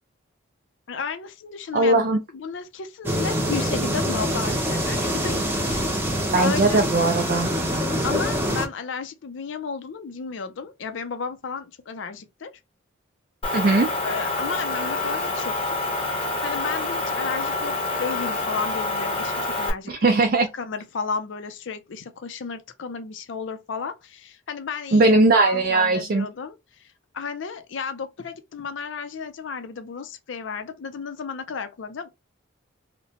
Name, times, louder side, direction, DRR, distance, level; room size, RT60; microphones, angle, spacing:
voice 1, 0.9-2.0 2.3-6.1 6.4-6.8 8.0-12.5 14.0-15.8 16.1-20.1 20.5-26.6 27.1-32.1, left 5 dB, 70° left, 0.4 m, -33 dB
voice 2, 1.7-2.2 6.3-7.5 13.5-13.9 19.9-20.5 24.9-26.3, right 2 dB, 45° right, 0.4 m, -19 dB
sound 1, 3.0-8.7, equal, 10° right, 0.6 m, -25 dB
Motor vehicle (road) / Engine, 13.4-19.7, left 2 dB, 25° left, 0.7 m, -27 dB
2.8 x 2.1 x 2.8 m
head